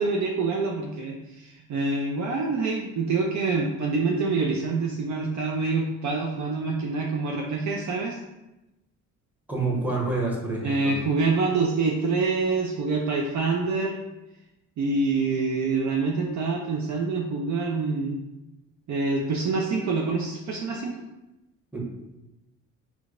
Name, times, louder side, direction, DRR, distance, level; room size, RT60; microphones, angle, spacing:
voice 1, 0.0-8.2 10.6-13.9 14.8-18.2 18.9-21.0, right 3 dB, 50° right, 0 dB, 0.5 m, -26 dB
voice 2, 9.5-10.9 21.7-21.8, right 3 dB, 5° right, -4 dB, 1.1 m, -27 dB
4.4 x 2.3 x 2.4 m, 0.97 s
supercardioid pair, 55°, 37 cm